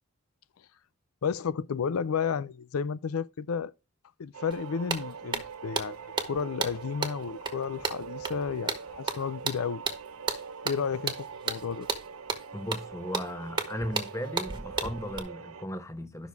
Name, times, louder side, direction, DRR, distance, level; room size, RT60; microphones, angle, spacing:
voice 1, 1.2-3.7 4.2-6.0 6.3-9.8 10.6-11.1 11.5-11.9, left 6 dB, 85° left, 0.4 m, -32 dB
sound 1, 4.3-15.7, right 6 dB, 80° right, 0.8 m, -43 dB
sound 2, 4.5-4.6 4.9-15.2, right 4 dB, 20° right, 1.4 m, -34 dB
voice 2, 12.5-16.3, equal, 15° left, 1.0 m, -36 dB
12.0 x 6.3 x 3.5 m
head